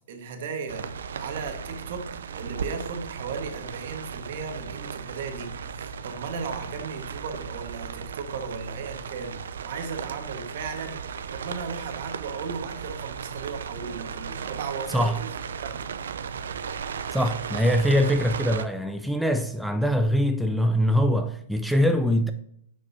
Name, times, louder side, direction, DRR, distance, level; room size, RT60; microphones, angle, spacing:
voice 1, 0.1-11.0 11.3-15.3 15.6-15.8, right 5 dB, 60° right, 1.4 m, -36 dB
sound 1, 0.7-18.7, right 6 dB, 90° right, 0.5 m, -36 dB
voice 2, 14.9-15.2 17.1-22.3, equal, ahead, 0.3 m, -23 dB
9.5 x 5.3 x 2.7 m
hypercardioid pair, 155°, 0 cm